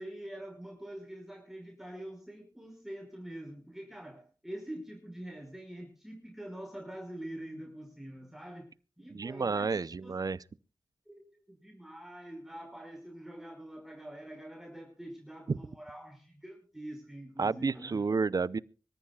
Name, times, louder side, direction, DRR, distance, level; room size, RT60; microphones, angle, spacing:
voice 1, 0.0-8.7 9.0-10.1 11.1-11.2 11.5-18.0, right 1 dB, 5° right, 5.6 m, -45 dB
voice 2, 9.1-10.4 15.5-15.6 17.4-18.6, right 4 dB, 55° right, 0.6 m, -30 dB
25.0 x 14.0 x 2.4 m
cardioid pair, 60°, 8 cm